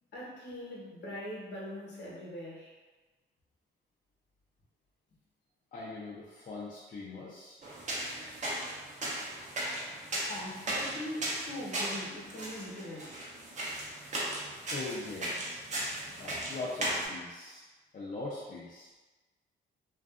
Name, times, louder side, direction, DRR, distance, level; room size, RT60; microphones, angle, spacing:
voice 1, 0.1-2.7 10.3-13.1, left 1 dB, 60° left, -6 dB, 1.0 m, -42 dB
voice 2, 5.7-7.6 14.5-15.6 16.2-17.6 17.9-18.9, left 2 dB, 40° left, -6 dB, 0.5 m, -41 dB
sound 1, 7.6-17.1, right 1 dB, 35° right, 0.7 m, -37 dB
2.5 x 2.3 x 2.4 m, 1.2 s
cardioid pair, 90°, 20 cm